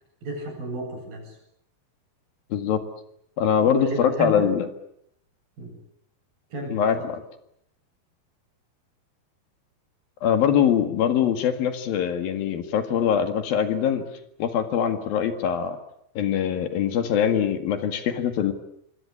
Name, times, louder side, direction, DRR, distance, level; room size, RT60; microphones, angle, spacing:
voice 1, 0.2-1.4 3.7-4.6 5.6-5.7 6.5-7.1, right 1 dB, 65° right, 3 dB, 9.8 m, -32 dB
voice 2, 2.5-2.8 3.4-4.7 6.7-7.2 10.2-14.0 14.4-15.8 16.2-18.5, left 8 dB, 70° left, 8 dB, 3.7 m, -23 dB
26.5 x 24.0 x 8.6 m, 0.74 s
omnidirectional pair, 4.4 m